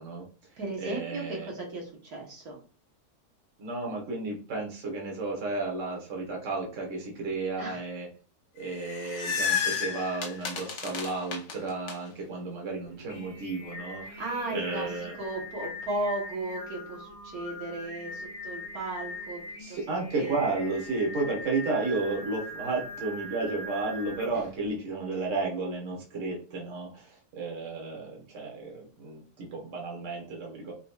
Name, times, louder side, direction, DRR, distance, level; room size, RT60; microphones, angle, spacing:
voice 1, 0.0-1.5 3.6-8.1 8.5-15.2 19.6-30.7, right 3 dB, 55° right, -1 dB, 1.6 m, -33 dB
voice 2, 0.6-2.6 7.6-7.8 14.0-19.8 20.2-20.4, right 2 dB, 70° right, -1 dB, 1.7 m, -35 dB
sound 1, 8.6-11.9, left 6 dB, 85° left, 1.5 m, -31 dB
Singing, 12.9-24.6, left 1 dB, 30° left, 0.8 m, -41 dB
5.7 x 3.2 x 2.4 m, 0.37 s
omnidirectional pair, 1.6 m